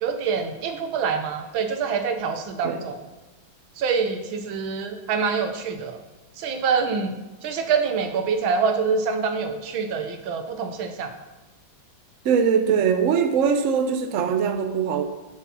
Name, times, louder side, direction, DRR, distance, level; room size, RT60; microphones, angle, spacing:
voice 1, 0.0-3.0 3.8-6.0 6.4-7.2 7.4-11.1, right 5 dB, 75° right, 7 dB, 1.7 m, -25 dB
voice 2, 12.2-15.0, right 7 dB, 60° right, 7 dB, 0.8 m, -21 dB
7.5 x 7.4 x 5.8 m, 1.1 s
omnidirectional pair, 2.2 m